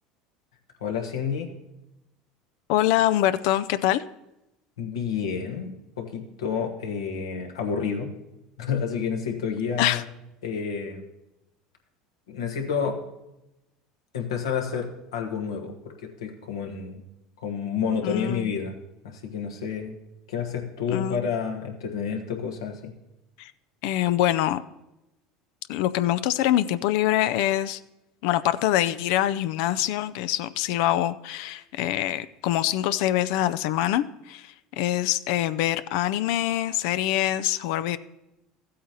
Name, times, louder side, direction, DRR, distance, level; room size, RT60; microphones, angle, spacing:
voice 1, 0.8-1.5 4.8-5.7 6.0-8.1 8.6-10.0 10.4-11.0 12.3-13.0 14.1-17.0 17.4-18.7 19.0-20.0 20.3-22.9, left 6 dB, 85° left, 2 dB, 1.3 m, -29 dB
voice 2, 2.7-4.0 9.8-10.0 18.0-18.5 20.9-21.3 23.4-23.5 23.8-24.6 25.7-27.8 28.2-38.0, left 13 dB, 70° left, 14 dB, 0.3 m, -24 dB
14.5 x 8.4 x 2.9 m, 0.92 s
hypercardioid pair, 85°, 3 cm